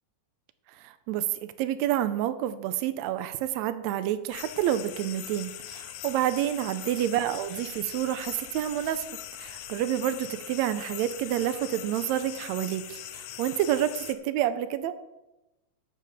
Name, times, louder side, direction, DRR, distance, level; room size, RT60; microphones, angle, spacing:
voice 1, 0.8-9.0 9.4-14.9, right 11 dB, 85° right, 12 dB, 1.5 m, -29 dB
sound 1, 4.3-14.1, left 12 dB, 80° left, 2.0 m, -41 dB
11.5 x 4.0 x 7.4 m, 0.98 s
omnidirectional pair, 3.8 m